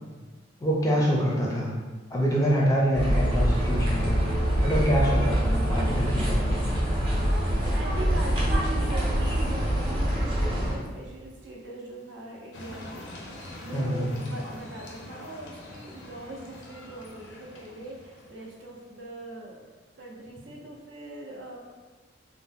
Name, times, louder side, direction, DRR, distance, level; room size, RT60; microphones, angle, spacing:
voice 1, 0.6-1.7 2.1-6.6 13.7-14.1, equal, 15° left, -4 dB, 0.4 m, -26 dB
sound 1, 2.9-10.7, equal, 25° right, 0.7 m, -25 dB
voice 2, 7.7-19.6 20.0-21.6, right 1 dB, 75° right, -1 dB, 0.6 m, -41 dB
sound 2, 12.5-18.8, left 1 dB, 80° left, 0.5 m, -44 dB
2.6 x 2.1 x 3.3 m, 1.3 s
head